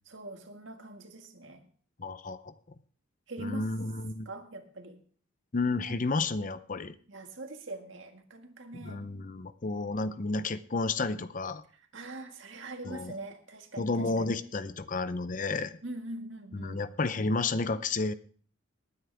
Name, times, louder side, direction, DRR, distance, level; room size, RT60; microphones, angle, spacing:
voice 1, 0.0-1.6 3.3-3.7 4.2-5.0 7.1-9.0 11.7-14.4 15.8-16.8, right 2 dB, 65° right, 5 dB, 1.8 m, -43 dB
voice 2, 2.0-2.5 3.4-4.3 5.5-6.9 8.7-11.6 12.9-13.1 13.8-15.8 16.6-18.1, left 3 dB, 40° left, 13 dB, 0.6 m, -31 dB
19.0 x 9.6 x 3.4 m, 0.44 s
head